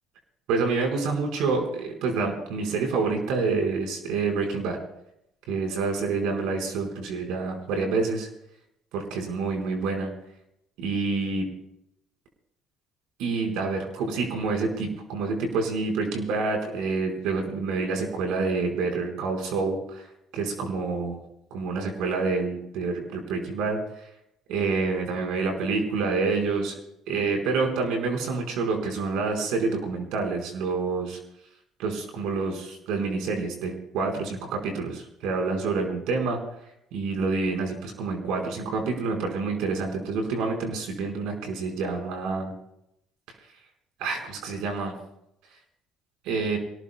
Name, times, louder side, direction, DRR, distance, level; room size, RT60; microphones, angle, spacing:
voice 1, 0.5-4.8 5.5-8.3 8.9-10.1 10.8-11.4 13.2-20.1 20.3-21.2 21.5-23.8 24.5-26.7 27.1-31.2 31.8-36.4 36.9-42.5 44.0-44.9 46.2-46.6, right 4 dB, 70° right, 2 dB, 4.5 m, -27 dB
26.0 x 18.0 x 2.2 m, 0.77 s
hypercardioid pair, 60°, 0 cm